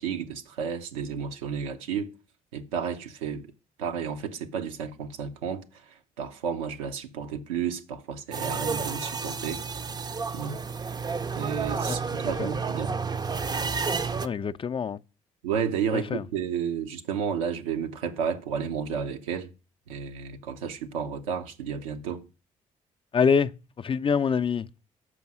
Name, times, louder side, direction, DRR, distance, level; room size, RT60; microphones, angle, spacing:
voice 1, 0.0-2.1 2.5-3.5 3.8-9.6 10.3-10.6 11.4-12.9 15.4-19.5 19.9-22.2, right 7 dB, 80° right, 0.6 m, -32 dB
sound 1, 8.3-14.3, right 5 dB, 25° right, 0.5 m, -31 dB
voice 2, 14.2-15.0 15.9-16.2 23.1-23.5 23.8-24.7, left 6 dB, 30° left, 0.4 m, -25 dB
6.2 x 5.4 x 5.9 m
figure-of-eight pair, 45°, 17 cm